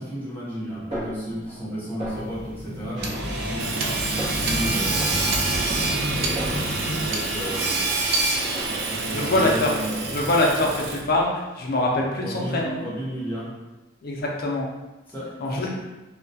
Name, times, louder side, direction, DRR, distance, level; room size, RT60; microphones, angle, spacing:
voice 1, 0.0-5.5 6.1-8.0 8.3-10.3 12.2-13.6 15.1-15.7, equal, 10° left, -9 dB, 0.8 m, -33 dB
Snare drum, 0.9-1.7 2.0-2.6 3.1-3.9 4.2-4.6 5.0-7.1 7.4-8.0 8.4-9.1, right 1 dB, 30° right, 0.8 m, -38 dB
sound 1, 2.1-7.5, equal, 75° right, 0.8 m, -31 dB
Hammer / Sawing, 3.0-11.2, right 3 dB, 55° right, 0.3 m, -27 dB
voice 2, 9.1-9.7 10.1-12.9 14.0-14.7 15.4-15.7, left 2 dB, 50° left, -1 dB, 0.4 m, -24 dB
2.2 x 2.1 x 2.6 m, 1.1 s
head